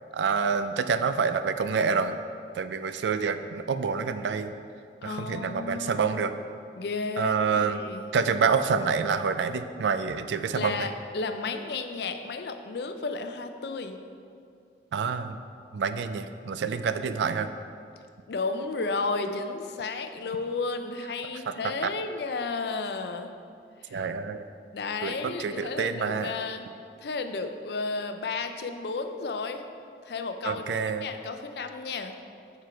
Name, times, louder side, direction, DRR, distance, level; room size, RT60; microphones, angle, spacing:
voice 1, 0.1-2.2 2.5-4.5 5.0-6.3 7.2-7.8 8.1-10.9 14.9-15.4 15.7-17.5 21.5-21.9 23.9-24.4 25.0-26.3 30.4-31.1, right 5 dB, 85° right, 10 dB, 0.3 m, -27 dB
voice 2, 5.0-6.1 6.8-8.1 10.5-14.0 18.3-23.3 23.9-24.1 24.7-26.6 27.0-29.6 30.0-32.1, left 4 dB, 70° left, 7 dB, 0.4 m, -33 dB
6.9 x 4.5 x 4.6 m, 2.3 s
head